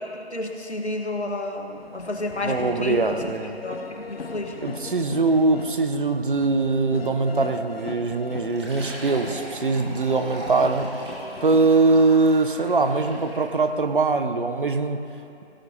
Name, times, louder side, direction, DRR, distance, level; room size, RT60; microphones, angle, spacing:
voice 1, 0.0-3.2 3.6-4.6, left 2 dB, 80° left, 2 dB, 1.7 m, -31 dB
sound 1, 1.8-11.8, left 4 dB, 60° left, 0.8 m, -39 dB
voice 2, 2.4-3.5 4.6-10.9 11.4-15.1, right 3 dB, 50° right, 7 dB, 0.8 m, -22 dB
Fill (with liquid), 8.5-13.6, right 1 dB, 25° right, 2.3 m, -39 dB
18.0 x 17.0 x 2.8 m, 2.8 s
figure-of-eight pair, 150°, 33 cm